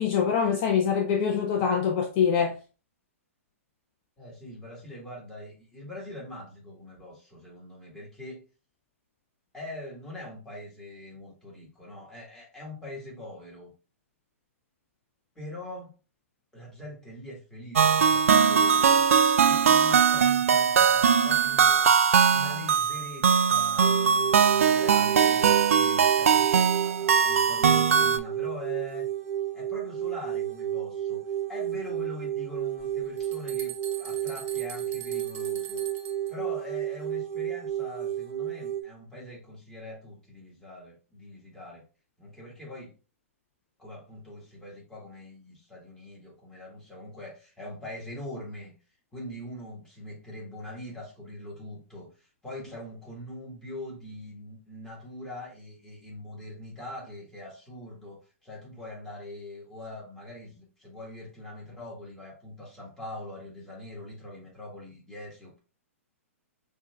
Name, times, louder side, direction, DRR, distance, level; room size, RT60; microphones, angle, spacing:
voice 1, 0.0-2.5, left 7 dB, 40° left, 0.5 m, -24 dB
voice 2, 4.2-8.4 9.5-13.7 15.4-15.9 16.5-21.9 22.3-29.1 29.5-31.2 31.5-35.8 36.3-41.8 42.2-42.9 43.8-48.7 49.1-65.6, left 1 dB, 5° left, 1.8 m, -42 dB
sound 1, 17.8-28.2, right 7 dB, 70° right, 0.4 m, -21 dB
sound 2, 23.8-38.8, right 11 dB, 55° right, 1.0 m, -32 dB
sound 3, 32.8-36.3, right 9 dB, 30° right, 0.7 m, -42 dB
6.1 x 2.6 x 2.3 m
figure-of-eight pair, 115°, 8 cm